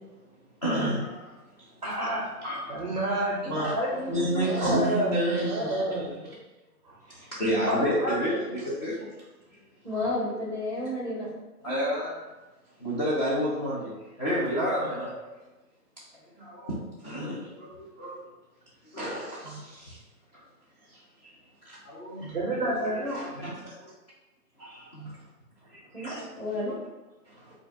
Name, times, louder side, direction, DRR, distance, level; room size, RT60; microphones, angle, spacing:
voice 1, 0.6-1.1 2.4-2.7 3.5-3.7 4.1-6.1 7.3-9.1 11.6-12.2 12.8-13.9 14.2-15.1 16.4-16.8 17.0-17.7 18.0-18.2 18.9-20.0 21.8-22.4 22.9-23.6 24.6-25.1 26.0-26.2, equal, 25° left, -7 dB, 0.6 m, -29 dB
voice 2, 1.8-2.4 2.7-6.1 6.8-6.9 7.7-8.4 9.9-10.0 22.2-23.2, right 1 dB, 30° right, -5 dB, 0.5 m, -30 dB
voice 3, 9.8-11.3 25.9-26.7, left 1 dB, 10° left, -7 dB, 1.2 m, -31 dB
5.5 x 2.4 x 2.5 m, 1.1 s
hypercardioid pair, 155°, 48 cm